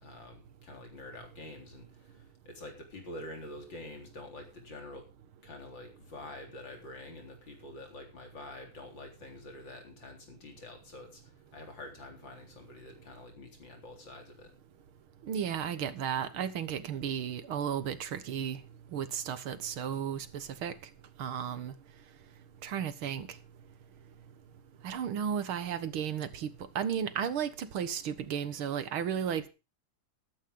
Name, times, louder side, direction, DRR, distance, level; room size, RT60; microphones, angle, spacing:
voice 1, 0.0-5.1 5.4-14.5, left 2 dB, 60° left, 4.5 m, -47 dB
voice 2, 15.2-18.6 18.9-20.8 21.2-21.7 22.6-23.3 24.8-26.5 26.8-29.5, right 8 dB, 80° right, 2.1 m, -34 dB
14.0 x 12.5 x 3.7 m
omnidirectional pair, 2.3 m